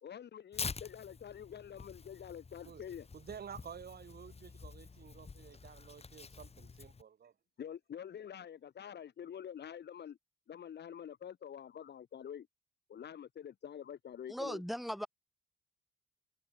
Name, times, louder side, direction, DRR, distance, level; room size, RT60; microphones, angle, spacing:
voice 1, 0.0-3.1 7.6-10.2 10.5-12.5 12.9-14.6, left 9 dB, 60° left, 4.2 m, -47 dB
Tearing, 0.5-7.0, left 4 dB, 30° left, 3.4 m, -47 dB
voice 2, 3.1-7.3, right 7 dB, 50° right, 5.1 m, -51 dB
voice 3, 14.3-15.1, equal, ahead, 2.9 m, -38 dB
cardioid pair, 90°, 20 cm